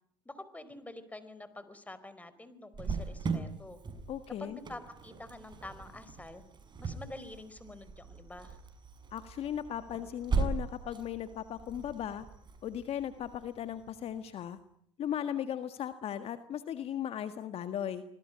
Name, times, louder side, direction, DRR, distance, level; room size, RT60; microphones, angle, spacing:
voice 1, 0.2-3.8 4.4-6.4 6.8-8.6, left 2 dB, 10° left, 14 dB, 4.6 m, -47 dB
Cricket, 2.7-14.2, right 4 dB, 35° right, 6.4 m, -39 dB
voice 2, 4.1-4.6 9.1-12.3 12.6-14.6 15.0-18.0, left 10 dB, 50° left, 10 dB, 1.7 m, -37 dB
26.0 x 20.5 x 9.9 m, 0.68 s
hypercardioid pair, 75°, 13 cm